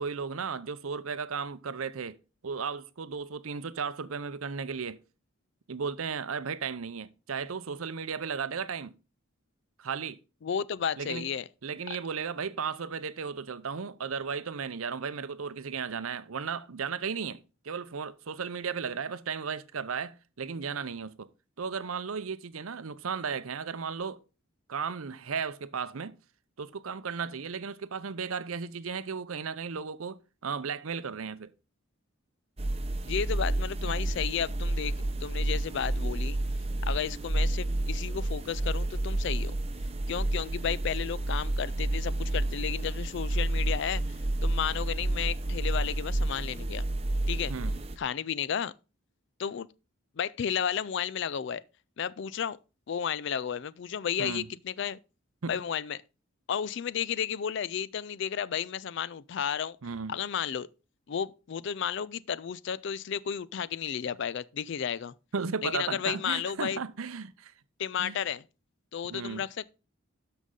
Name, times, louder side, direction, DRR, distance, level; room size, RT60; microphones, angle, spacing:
voice 1, 0.0-2.2 2.4-5.0 5.7-8.9 9.8-10.2 11.0-11.3 11.6-21.3 21.6-24.2 24.7-26.2 26.6-31.5 33.8-34.0 47.5-47.8 54.2-54.5 55.4-55.6 59.8-60.2 65.3-67.5 68.0-68.2 69.1-69.5, right 5 dB, 80° right, 0.7 m, -35 dB
voice 2, 10.4-11.4 33.0-34.9 35.2-36.4 36.8-39.5 40.1-44.0 44.4-46.8 47.3-47.5 48.0-48.7 49.4-49.7 50.2-51.6 52.0-52.6 52.9-55.0 55.5-56.0 56.5-59.8 60.1-60.7 61.1-65.1 65.6-66.8 67.8-68.4 68.9-69.5, left 8 dB, 55° left, 0.4 m, -32 dB
sound 1, 32.6-48.0, right 1 dB, 30° right, 0.7 m, -30 dB
12.5 x 5.4 x 3.8 m
head